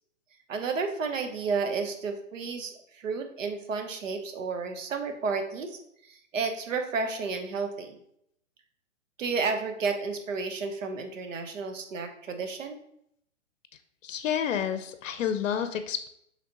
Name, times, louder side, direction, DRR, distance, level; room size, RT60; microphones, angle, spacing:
voice 1, 0.5-5.8 6.1-8.0 9.2-12.8, right 4 dB, 80° right, 6 dB, 0.8 m, -32 dB
voice 2, 14.0-16.1, left 8 dB, 80° left, 9 dB, 0.6 m, -29 dB
4.9 x 3.4 x 2.8 m, 0.72 s
hypercardioid pair, 135°, 38 cm